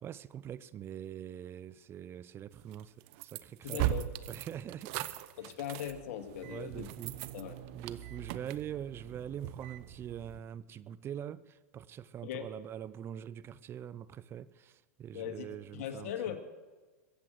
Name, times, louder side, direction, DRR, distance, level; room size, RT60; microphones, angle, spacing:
voice 1, 0.0-5.1 5.4-5.5 6.4-7.2 7.7-16.4, right 9 dB, 30° right, 0.5 m, -44 dB
sound 1, 2.7-10.4, right 14 dB, 55° right, 0.9 m, -39 dB
voice 2, 3.6-4.1 5.4-6.9 7.3-7.6 12.2-12.5 15.1-16.4, left 10 dB, 65° left, 1.9 m, -39 dB
21.5 x 8.3 x 7.6 m
hypercardioid pair, 115°, 8 cm